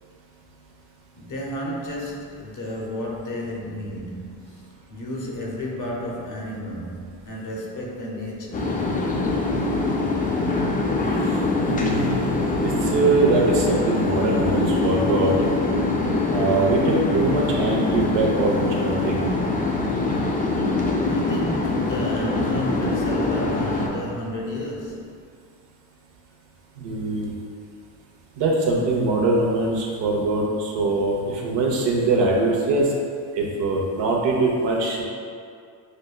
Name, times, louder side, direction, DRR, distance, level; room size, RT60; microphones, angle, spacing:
voice 1, 1.2-8.7 21.0-25.1, left 1 dB, 45° left, -2 dB, 0.7 m, -32 dB
sound 1, 8.5-23.9, left 2 dB, 20° left, 0.3 m, -23 dB
voice 2, 11.6-12.2 12.6-15.5 16.3-19.2 26.8-27.3 28.4-32.9 33.3-35.0, right 2 dB, 70° right, -1 dB, 0.7 m, -22 dB
5.0 x 2.1 x 2.2 m, 2.3 s
cardioid pair, 85°, 45 cm